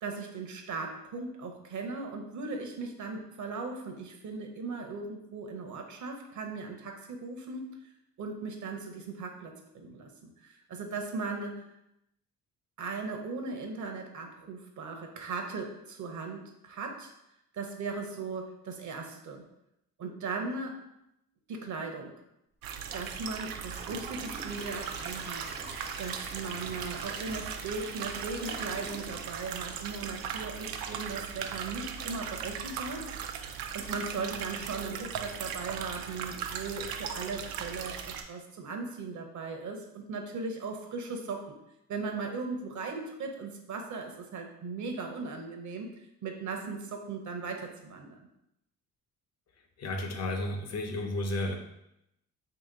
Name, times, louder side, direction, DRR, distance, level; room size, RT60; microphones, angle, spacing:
voice 1, 0.0-7.7 8.2-11.6 12.8-17.1 17.5-19.4 20.0-20.8 21.5-22.1 22.9-25.7 26.0-33.3 33.7-41.6 41.9-45.9 46.2-48.3, right 4 dB, 55° right, 3 dB, 0.8 m, -38 dB
sound 1, 22.6-38.2, right 7 dB, 85° right, 0.5 m, -38 dB
Gurgling / Toilet flush / Trickle dribble, 23.5-30.5 30.9-31.0 31.5-31.6, right 3 dB, 30° right, 0.5 m, -45 dB
voice 2, 49.8-51.5, left 1 dB, 50° left, 4 dB, 0.7 m, -32 dB
2.9 x 2.8 x 3.9 m, 0.83 s
cardioid pair, 90°, 34 cm